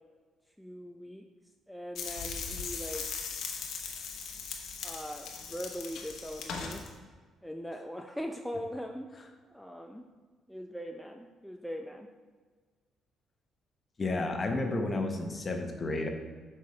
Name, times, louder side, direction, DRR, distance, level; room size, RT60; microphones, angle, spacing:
voice 1, 0.6-1.3 1.7-3.1 4.8-6.8 7.4-9.1 9.5-10.0 10.5-12.1, equal, ahead, 3 dB, 0.5 m, -40 dB
sound 1, 1.9-6.9, left 5 dB, 75° left, 1.0 m, -39 dB
voice 2, 14.0-16.1, left 2 dB, 35° left, 4 dB, 1.0 m, -31 dB
7.5 x 5.6 x 3.2 m, 1.5 s
cardioid pair, 75°, 0 cm